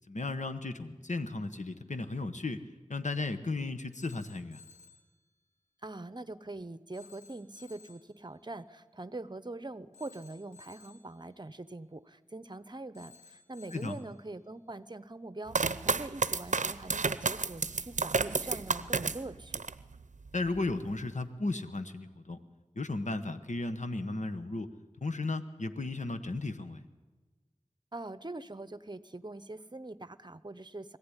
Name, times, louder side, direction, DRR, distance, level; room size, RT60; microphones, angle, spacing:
voice 1, 0.1-2.6 2.9-4.6 13.7-14.0 20.3-22.4 22.7-24.7 25.0-26.8, left 2 dB, 75° left, 9 dB, 1.2 m, -35 dB
Telephone, 3.9-5.1 6.9-8.1 9.9-11.1 12.9-14.1, left 5 dB, 55° left, 2.6 m, -57 dB
voice 2, 5.8-19.6 27.9-31.0, right 2 dB, 35° right, 15 dB, 0.9 m, -43 dB
sound 1, 15.5-19.8 20.3-20.9, right 4 dB, 75° right, 0.6 m, -31 dB
21.5 x 15.0 x 9.9 m, 1.2 s
wide cardioid pair, 50°, 13 cm